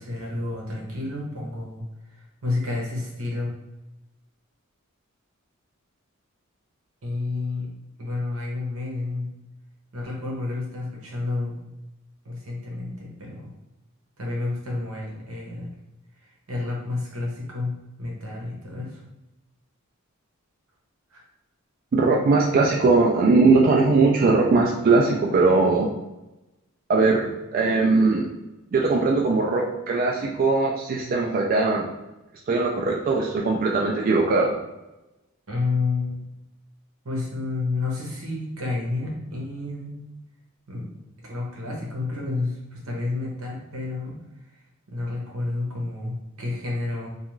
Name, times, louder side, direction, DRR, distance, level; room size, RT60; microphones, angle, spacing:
voice 1, 0.0-1.8 2.1-3.5 7.0-7.7 8.0-9.3 9.9-11.6 12.2-13.5 14.2-15.7 16.2-19.0 21.1-21.2 35.5-36.2 37.0-40.0 40.7-40.9 41.2-44.1 44.9-47.1, left 3 dB, 85° right, -2 dB, 0.9 m, -30 dB
voice 2, 21.9-25.9 26.9-28.3 28.7-31.9 32.5-34.5, right 3 dB, 45° right, -1 dB, 0.3 m, -20 dB
2.4 x 2.3 x 3.0 m, 0.99 s
head